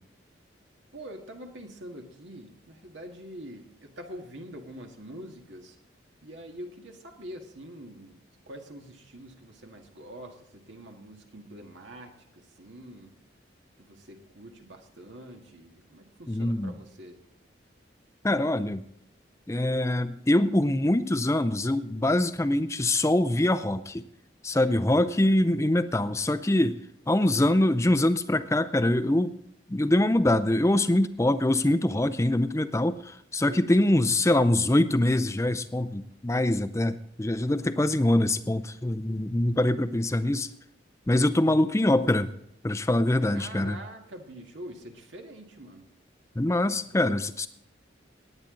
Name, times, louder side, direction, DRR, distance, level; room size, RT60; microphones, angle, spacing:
voice 1, 0.9-5.8 6.2-8.2 8.5-13.1 13.8-17.2 24.6-25.1 43.3-45.8, right 1 dB, 80° right, 3 dB, 1.9 m, -45 dB
voice 2, 16.3-16.7 18.2-18.8 19.5-24.0 24.4-26.8 27.1-29.4 29.7-40.5 41.1-42.3 42.6-43.8 46.4-47.5, left 1 dB, 15° left, 12 dB, 0.5 m, -24 dB
19.0 x 8.9 x 3.8 m, 0.73 s
head